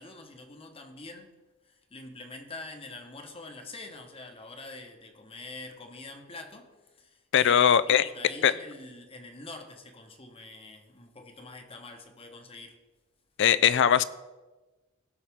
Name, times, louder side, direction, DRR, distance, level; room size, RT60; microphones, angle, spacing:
voice 1, 0.0-1.4 1.6-12.8, left 2 dB, 30° left, 1.0 m, -45 dB
voice 2, 7.3-8.1 8.4-8.5 13.4-14.0, left 9 dB, 60° left, 0.4 m, -20 dB
17.0 x 5.7 x 3.5 m
head